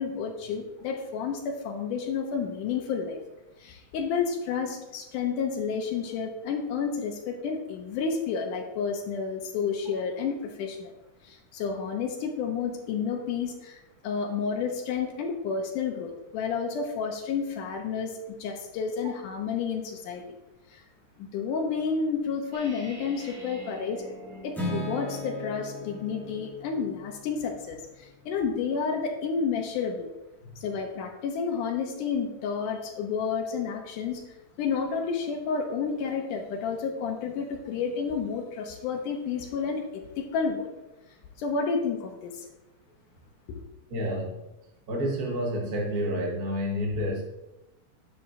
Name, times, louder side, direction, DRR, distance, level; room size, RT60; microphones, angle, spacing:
voice 1, 0.0-3.2 3.6-10.9 11.2-20.2 20.7-20.8 21.2-24.0 24.4-30.1 30.6-40.7 41.4-42.5 43.5-43.6, left 5 dB, 80° left, 3 dB, 2.4 m, -30 dB
sound 1, 22.5-26.5, right 1 dB, 70° right, 3.4 m, -45 dB
Acoustic guitar / Strum, 24.5-28.6, left 1 dB, ahead, 1.3 m, -38 dB
voice 2, 43.9-44.3 44.9-47.2, equal, 50° right, -1 dB, 1.1 m, -29 dB
10.5 x 8.3 x 2.7 m, 0.96 s
omnidirectional pair, 3.7 m